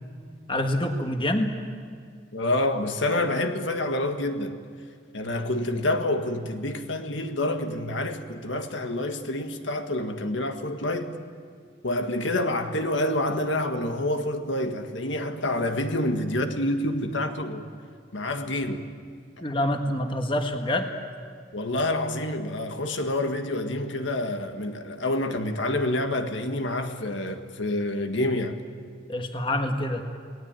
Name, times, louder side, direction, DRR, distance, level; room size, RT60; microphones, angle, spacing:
voice 1, 0.5-1.5 19.4-20.9 29.1-30.1, left 1 dB, 25° left, 1.6 m, -26 dB
voice 2, 2.3-4.6 5.1-11.2 11.8-17.7 18.1-18.9 21.5-28.6, left 1 dB, 75° left, 1.8 m, -27 dB
29.0 x 19.5 x 9.0 m
head